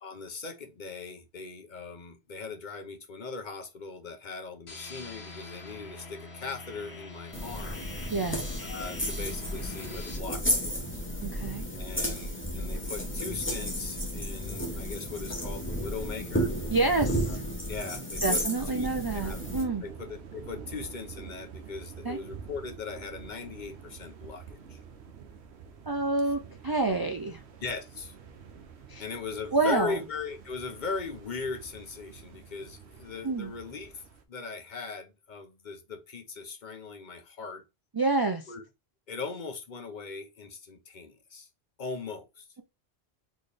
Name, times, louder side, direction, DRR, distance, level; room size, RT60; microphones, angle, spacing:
voice 1, 0.0-7.9 8.6-11.0 11.7-16.5 17.7-18.4 18.7-19.4 19.8-24.8 27.6-28.1 29.0-37.6 38.5-38.6 39.1-41.5 41.8-42.5, left 4 dB, 50° left, 0.8 m, -39 dB
sound 1, 4.7-10.2, left 2 dB, 80° left, 1.5 m, -45 dB
sound 2, 7.3-19.6, equal, 10° left, 1.0 m, -33 dB
voice 2, 8.1-8.6 11.2-11.6 16.7-17.4 18.2-19.8 22.0-22.2 25.9-27.4 28.9-29.0 29.5-30.0 33.2-33.5 37.9-38.5, right 3 dB, 40° right, 0.3 m, -28 dB
sound 3, 19.2-34.2, right 6 dB, 80° right, 1.0 m, -47 dB
4.1 x 3.7 x 3.3 m
omnidirectional pair, 1.1 m